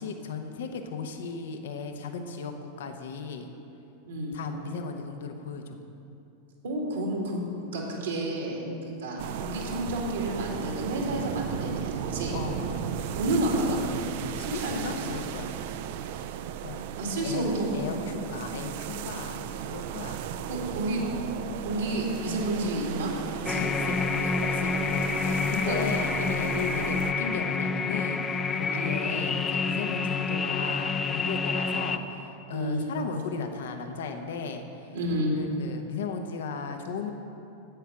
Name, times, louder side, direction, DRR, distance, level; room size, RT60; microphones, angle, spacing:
voice 1, 0.0-3.5 4.3-5.8 12.3-13.1 14.3-15.6 16.6-16.9 17.2-20.2 23.6-34.9 35.4-37.1, left 5 dB, 70° left, 6 dB, 0.8 m, -36 dB
voice 2, 4.1-4.4 6.6-7.4 7.7-12.4 13.2-13.8 14.5-15.0 17.0-17.7 20.5-21.0 21.6-23.1 23.5-23.6 25.7-25.8 28.6-28.9 32.5-32.8 34.9-35.4, right 1 dB, 75° right, -1 dB, 2.1 m, -30 dB
sound 1, 9.2-27.1, right 9 dB, 60° right, 0.4 m, -36 dB
sound 2, 23.4-32.0, left 4 dB, 20° left, 0.5 m, -28 dB
8.2 x 8.0 x 6.0 m, 2.8 s
hypercardioid pair, 95°, 0 cm